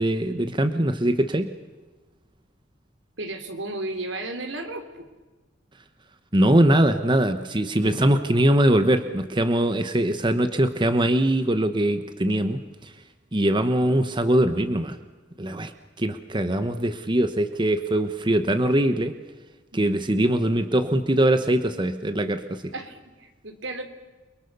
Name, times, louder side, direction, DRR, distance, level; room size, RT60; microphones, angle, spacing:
voice 1, 0.0-1.5 6.3-12.9 13.3-15.0 15.4-15.7 16.0-19.1 19.7-22.7, right 1 dB, 25° right, 9 dB, 1.1 m, -22 dB
voice 2, 3.2-5.1 22.7-23.8, right 2 dB, 80° right, 7 dB, 3.5 m, -33 dB
29.5 x 23.0 x 6.9 m, 1.2 s
head